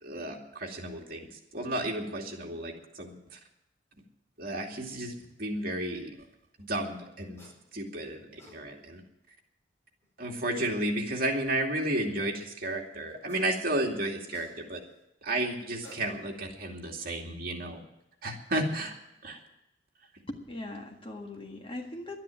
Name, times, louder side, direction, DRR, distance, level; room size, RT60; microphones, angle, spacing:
voice 1, 0.0-3.4 4.4-6.1 6.7-7.4 7.7-9.0 10.2-14.8 15.2-17.8 18.2-18.9 19.2-19.4, right 1 dB, 50° right, 0 dB, 2.5 m, -33 dB
sound 1, 7.4-7.6 8.1-8.6 10.0-10.1 13.1-13.6 13.9-14.9 15.6-16.5, left 1 dB, 15° left, 4.9 m, -53 dB
voice 2, 20.3-22.2, left 1 dB, 30° left, 2 dB, 1.8 m, -40 dB
12.0 x 10.5 x 9.0 m, 0.82 s
head